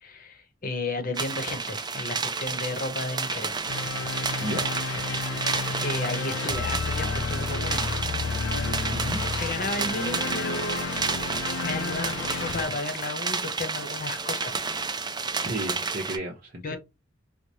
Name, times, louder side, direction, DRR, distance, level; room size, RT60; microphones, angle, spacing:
voice 1, 0.0-3.8 5.1-5.3 5.8-8.0 9.4-11.2 11.6-14.7 16.6-16.8, left 2 dB, 50° left, 0.8 m, -33 dB
sound 1, 1.1-16.2, right 4 dB, 20° right, 0.5 m, -31 dB
sound 2, 3.7-12.7, left 4 dB, 75° left, 0.5 m, -31 dB
voice 2, 4.4-4.9 8.9-9.2 15.4-16.8, right 1 dB, 50° right, 0.8 m, -33 dB
4.7 x 2.1 x 2.7 m
head